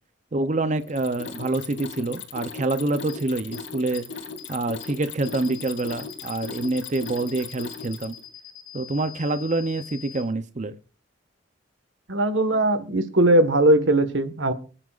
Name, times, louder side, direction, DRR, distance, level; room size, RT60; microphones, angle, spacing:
voice 1, 0.3-4.1 4.5-8.1 8.7-10.8, right 2 dB, 40° right, 0.6 m, -26 dB
Mechanisms, 0.8-8.2, left 5 dB, 85° left, 2.6 m, -38 dB
sound 1, 3.1-3.2 3.5-3.6 3.9-4.0 4.4-4.5 4.8-4.9 5.2-10.2, left 11 dB, 55° left, 3.0 m, -43 dB
voice 2, 12.1-14.5, right 1 dB, 85° right, 1.5 m, -19 dB
26.5 x 9.9 x 2.5 m
head